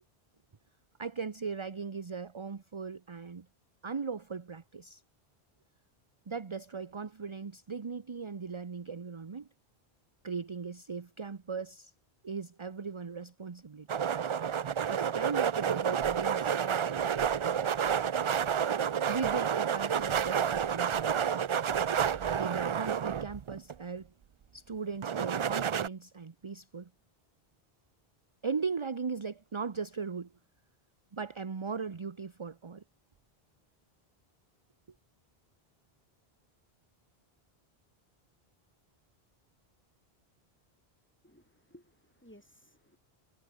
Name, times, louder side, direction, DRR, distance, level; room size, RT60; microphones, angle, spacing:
voice 1, 1.0-3.5 3.8-5.0 6.3-9.5 10.2-11.9 12.2-13.9 14.9-17.1 19.1-21.4 22.4-24.1 24.5-26.9 28.4-30.3 31.1-32.8, right 5 dB, 30° right, 0.8 m, -38 dB
sound 1, 13.9-23.7 25.0-25.9, right 8 dB, 50° right, 0.3 m, -30 dB
voice 2, 41.2-43.0, equal, 10° left, 5.5 m, -58 dB
omnidirectional pair, 1.0 m